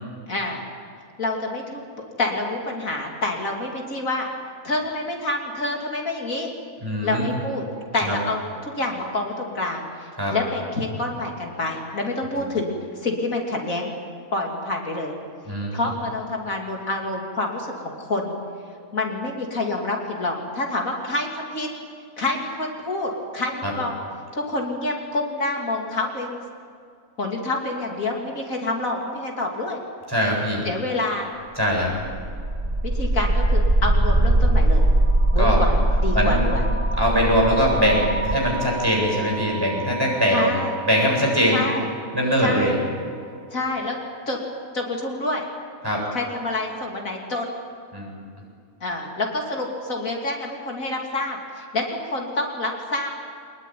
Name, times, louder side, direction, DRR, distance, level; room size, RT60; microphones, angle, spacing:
voice 1, 0.3-0.6 1.2-1.8 2.2-4.3 4.6-6.5 7.0-7.7 7.9-13.9 14.3-15.1 15.7-18.3 18.9-21.7 22.2-23.9 24.3-26.4 27.2-29.8 30.6-31.3 32.8-34.9 35.3-35.7 36.0-36.6 40.3-40.7 41.5-41.9 42.4-42.8 43.5-44.0 44.3-44.4 44.7-45.4 46.1-47.5 48.8-53.1, left 2 dB, 70° left, 0 dB, 3.5 m, -27 dB
voice 2, 6.8-7.3 8.0-8.2 10.2-10.4 12.4-12.5 15.5-15.8 23.6-23.7 30.1-30.7 31.6-31.9 35.4-35.6 36.1-36.4 37.0-40.5 40.8-41.6 42.1-42.7 45.8-46.0 47.9-48.1, equal, 15° right, -2 dB, 7.6 m, -21 dB
sound 1, 31.8-41.7, right 1 dB, 35° right, 3.7 m, -22 dB
25.5 x 20.5 x 9.4 m, 2.2 s
omnidirectional pair, 1.5 m